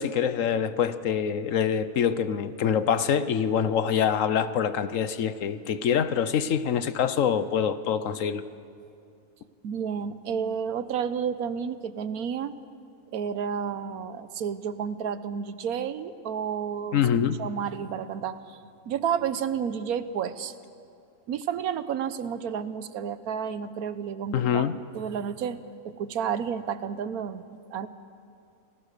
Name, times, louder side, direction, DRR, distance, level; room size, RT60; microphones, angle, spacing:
voice 1, 0.0-8.4 16.9-17.4 24.3-24.8, left 8 dB, 65° left, 13 dB, 1.1 m, -25 dB
voice 2, 9.6-12.5 13.1-17.0 17.4-18.6 18.9-20.5 21.3-27.9, right 7 dB, 90° right, 13 dB, 1.3 m, -31 dB
28.5 x 19.0 x 6.6 m, 2.4 s
omnidirectional pair, 1.5 m